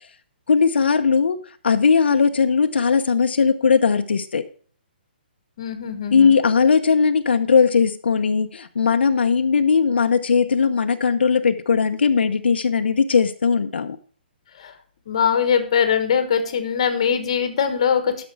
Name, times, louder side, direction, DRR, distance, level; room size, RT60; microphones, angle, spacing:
voice 1, 0.5-1.4 1.6-4.4 6.1-14.0, left 5 dB, 85° left, 7 dB, 0.9 m, -18 dB
voice 2, 5.6-6.3 14.6-14.7 15.1-18.3, left 7 dB, 35° left, 8 dB, 1.3 m, -21 dB
12.0 x 6.2 x 4.7 m, 0.44 s
hypercardioid pair, 180°, 6 cm